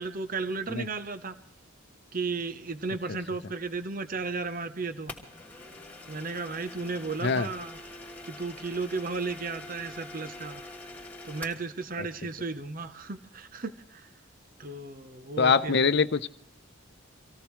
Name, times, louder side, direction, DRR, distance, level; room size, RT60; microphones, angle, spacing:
voice 1, 0.0-1.4 2.1-5.1 6.1-7.8 8.3-14.1 14.6-15.9, right 4 dB, 45° right, 0.9 m, -34 dB
sound 1, 5.1-11.7, left 2 dB, 10° left, 2.9 m, -45 dB
voice 2, 15.4-16.3, left 5 dB, 55° left, 0.7 m, -23 dB
26.0 x 17.5 x 3.2 m
head